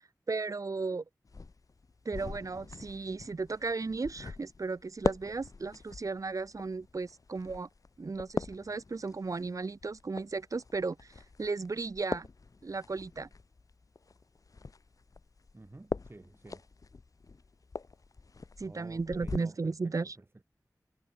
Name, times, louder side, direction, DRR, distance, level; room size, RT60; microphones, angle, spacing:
voice 1, 0.3-1.0 2.0-7.7 8.0-11.1 11.4-12.3 12.6-13.3 18.6-20.1, right 4 dB, 55° right, 0.8 m, -35 dB
sound 1, 1.2-19.4, left 4 dB, 60° left, 0.9 m, -42 dB
voice 2, 15.5-16.7 18.6-20.4, right 2 dB, 35° right, 6.7 m, -52 dB
wide cardioid pair, 70°, 7 cm